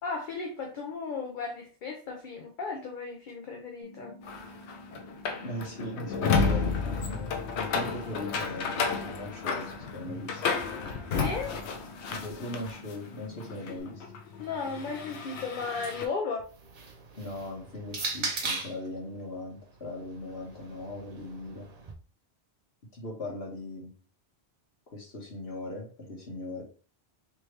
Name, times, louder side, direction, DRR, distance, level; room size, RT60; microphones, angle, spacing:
voice 1, 0.0-4.1 11.1-11.5 14.4-16.5, left 4 dB, 55° left, 1 dB, 0.8 m, -35 dB
sound 1, 3.8-13.8, left 1 dB, 30° left, 1.5 m, -50 dB
sound 2, 4.2-13.0 13.3-16.1, left 5 dB, 90° left, 0.9 m, -32 dB
voice 2, 5.4-7.3 7.6-10.5 12.1-14.0 17.2-21.7 22.9-23.9 24.9-26.6, left 1 dB, 70° left, -1 dB, 1.5 m, -39 dB
sound 3, 16.4-18.9 19.8-21.9, right 3 dB, 45° right, 0.7 m, -38 dB
3.5 x 3.1 x 3.1 m, 0.37 s
omnidirectional pair, 1.1 m